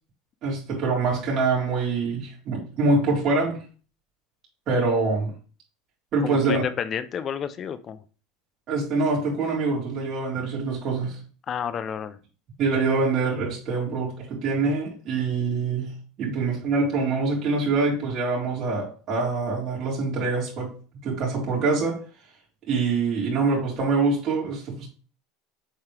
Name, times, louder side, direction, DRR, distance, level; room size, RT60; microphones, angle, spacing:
voice 1, 0.4-3.6 4.7-5.3 6.1-6.6 8.7-11.2 12.6-15.9 16.2-20.7 21.0-22.0 22.7-24.9, right 3 dB, 45° right, -5 dB, 3.8 m, -25 dB
voice 2, 6.2-8.0 11.5-12.2, left 8 dB, 35° left, 13 dB, 0.7 m, -30 dB
7.5 x 4.4 x 3.4 m, 0.38 s
supercardioid pair, 110°, 0 cm